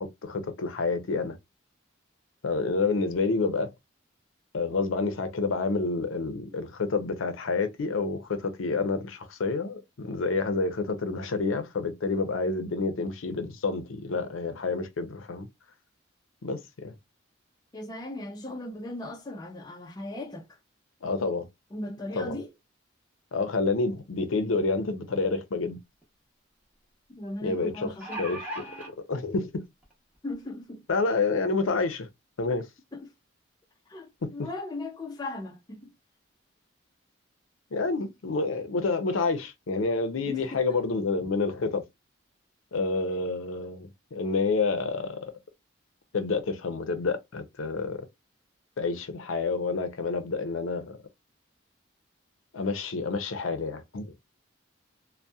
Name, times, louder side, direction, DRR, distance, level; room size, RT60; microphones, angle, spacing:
voice 1, 0.0-1.4 2.4-3.7 4.5-15.5 16.4-16.9 21.0-21.5 22.1-22.4 23.3-25.8 27.4-28.6 29.1-29.6 30.9-32.1 32.4-32.7 34.2-34.5 37.7-41.8 42.7-45.3 46.1-48.1 48.8-51.0 52.5-54.1, left 3 dB, 80° left, 0.5 m, -28 dB
voice 2, 17.7-20.4 21.7-22.5 27.1-28.2 30.2-30.8 33.9-35.9 40.3-40.4, left 2 dB, 20° left, 0.4 m, -37 dB
sound 1, 26.0-26.1 27.7-28.9 29.8-29.9 30.3-30.4, right 1 dB, 5° right, 0.8 m, -37 dB
2.7 x 2.1 x 2.2 m
head